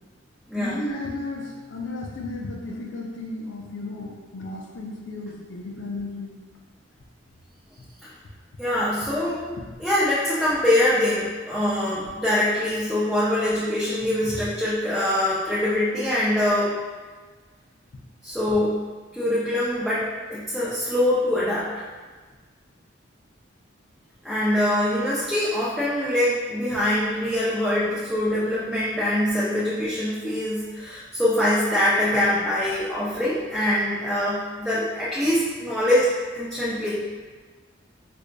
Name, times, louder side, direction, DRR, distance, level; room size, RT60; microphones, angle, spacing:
voice 1, 0.6-6.3 9.0-9.1 9.4-9.6, left 2 dB, 70° left, -2 dB, 0.5 m, -34 dB
voice 2, 8.6-9.4 9.8-16.7 18.2-18.8 19.1-21.7 24.2-37.0, left 1 dB, ahead, -10 dB, 0.4 m, -23 dB
4.6 x 2.5 x 2.2 m, 1.4 s
head